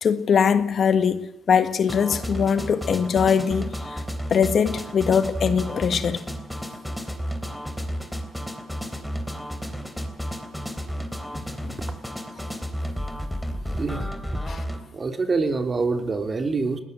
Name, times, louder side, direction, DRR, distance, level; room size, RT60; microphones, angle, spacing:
voice 1, 0.0-4.0 4.3-6.2 11.3-11.4 11.7-11.8 14.5-14.6, left 7 dB, 55° left, 1.6 m, -22 dB
sound 1, 1.9-14.8, equal, ahead, 3.4 m, -32 dB
voice 2, 13.7-14.1 14.9-16.8, right 4 dB, 35° right, 3.2 m, -25 dB
20.5 x 19.0 x 7.9 m
cardioid pair, 90°, 0 cm